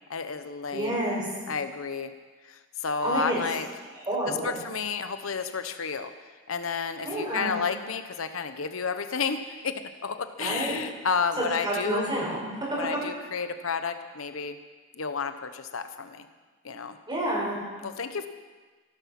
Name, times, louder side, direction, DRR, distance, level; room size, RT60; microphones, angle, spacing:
voice 1, 0.1-1.0 1.5-2.1 2.5-3.7 4.3-6.1 6.5-12.1 12.8-14.6 15.0-16.2 16.6-17.0 17.8-18.3, left 5 dB, 80° left, 9 dB, 0.9 m, -31 dB
voice 2, 0.7-1.3 3.0-3.4 4.1-4.6 7.0-7.5 10.4-10.8 11.4-12.9 17.1-17.6, right 1 dB, 20° right, -4 dB, 5.7 m, -29 dB
15.5 x 13.0 x 6.0 m, 1.4 s
head